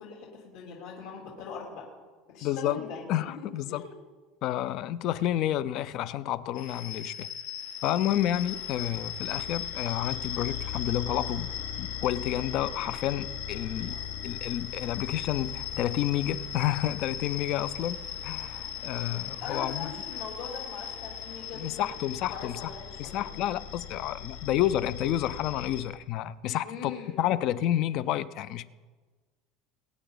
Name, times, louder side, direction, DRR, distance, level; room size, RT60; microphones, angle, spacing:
voice 1, 0.0-1.8 2.3-3.1 3.4-4.0 13.9-14.2 19.4-21.9 22.3-23.3 26.6-27.2, left 5 dB, 65° left, 3.2 m, -41 dB
voice 2, 2.4-2.8 3.1-3.8 4.4-7.3 7.8-11.5 11.8-14.0 14.2-18.0 18.2-19.9 21.5-22.6 23.0-26.9 27.2-28.7, left 12 dB, 40° left, 0.5 m, -30 dB
sound 1, 6.5-25.8, left 9 dB, 85° left, 2.9 m, -38 dB
23.5 x 9.3 x 3.9 m
cardioid pair, 175°, 0 cm